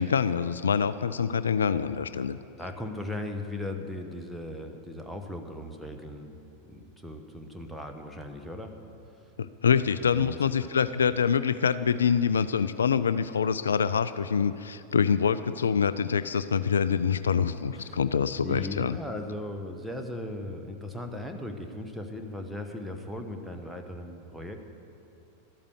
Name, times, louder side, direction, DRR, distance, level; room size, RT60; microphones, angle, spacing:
voice 1, 0.0-2.4 9.4-19.0, left 6 dB, 70° left, 14 dB, 0.3 m, -25 dB
voice 2, 2.6-6.4 6.7-8.8 10.0-10.7 17.2-18.0 18.4-24.7, left 1 dB, ahead, 3 dB, 1.1 m, -38 dB
12.5 x 8.8 x 8.0 m, 2.7 s
figure-of-eight pair, 90°, 0 cm